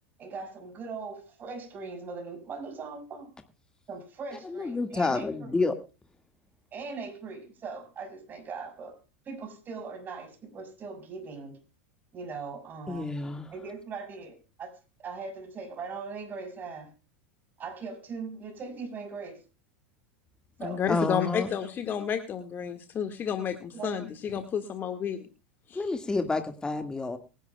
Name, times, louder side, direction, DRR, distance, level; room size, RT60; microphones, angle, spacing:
voice 1, 0.2-3.3 3.9-5.5 6.7-9.0 9.3-11.6 12.1-13.1 13.5-16.9 17.6-19.4 20.6-20.8 23.7-24.1, right 4 dB, 30° right, 6.0 m, -40 dB
voice 2, 4.4-5.7 12.9-13.5 20.9-21.5 25.7-27.2, left 3 dB, 10° left, 1.9 m, -29 dB
voice 3, 20.6-25.3 25.7-25.8, left 8 dB, 35° left, 1.8 m, -31 dB
23.5 x 11.0 x 2.3 m
hypercardioid pair, 105°, 6 cm